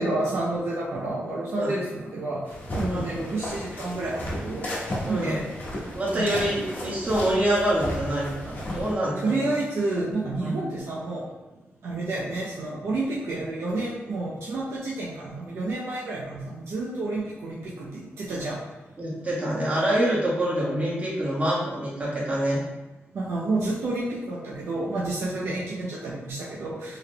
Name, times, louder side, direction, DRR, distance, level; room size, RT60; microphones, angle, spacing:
voice 1, 0.0-2.4 2.7-5.5 6.1-6.5 9.2-11.3 11.8-18.6 23.1-27.0, right 2 dB, 75° right, -6 dB, 0.6 m, -30 dB
sound 1, 2.5-8.9, equal, 45° left, 1.1 m, -34 dB
voice 2, 5.0-5.4 5.9-9.4 10.4-10.6 19.0-22.6 25.3-25.5, right 1 dB, 35° right, -6 dB, 1.4 m, -26 dB
3.6 x 3.6 x 2.2 m, 1.1 s
cardioid pair, 80°, 4 cm